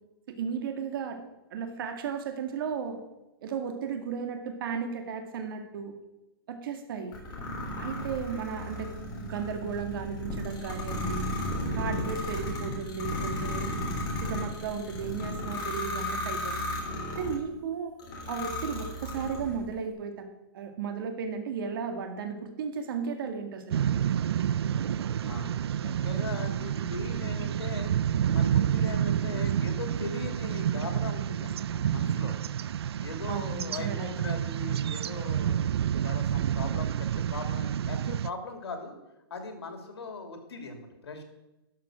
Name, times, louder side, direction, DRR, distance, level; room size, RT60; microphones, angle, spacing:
voice 1, 0.3-1.2 1.5-3.0 3.4-5.9 6.5-7.1 7.8-8.9 9.2-11.3 11.7-13.8 14.2-16.7 17.2-17.9 18.3-20.3 20.5-23.8 33.3-34.3, right 6 dB, 60° right, 6 dB, 2.1 m, -35 dB
sound 1, 7.1-17.4 18.0-19.6, left 1 dB, 30° left, 3.3 m, -34 dB
sound 2, 23.7-38.3, right 9 dB, 80° right, 0.4 m, -29 dB
voice 2, 25.2-25.6 25.8-32.4 33.0-35.7 36.0-38.9 39.3-41.2, left 3 dB, 90° left, 5 dB, 2.6 m, -39 dB
12.5 x 5.9 x 6.3 m, 0.97 s
hypercardioid pair, 145°, 13 cm